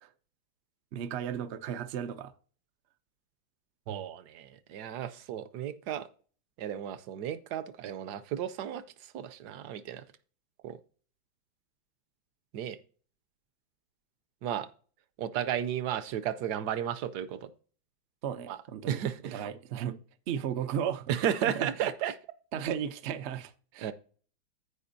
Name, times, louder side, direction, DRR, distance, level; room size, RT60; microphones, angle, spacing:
voice 1, 0.9-2.3 18.2-20.0 20.3-21.1 21.4-21.9 22.5-23.9, right 8 dB, 90° right, 0.5 m, -35 dB
voice 2, 3.9-6.1 6.6-8.8 9.1-10.0 10.6-10.8 12.5-12.8 14.4-14.7 15.2-17.5 18.5-18.6 18.9-19.5 21.1-22.1 23.8-23.9, right 10 dB, 70° right, 1.1 m, -33 dB
15.0 x 5.0 x 2.6 m
omnidirectional pair, 2.1 m